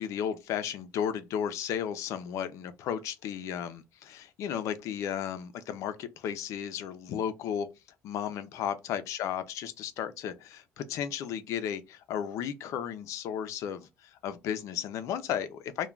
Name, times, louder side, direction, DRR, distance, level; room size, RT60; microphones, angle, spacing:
voice 1, 0.0-7.7 8.0-15.9, left 9 dB, 70° left, 0.5 m, -34 dB
2.4 x 2.2 x 3.1 m
cardioid pair, 120°, 6 cm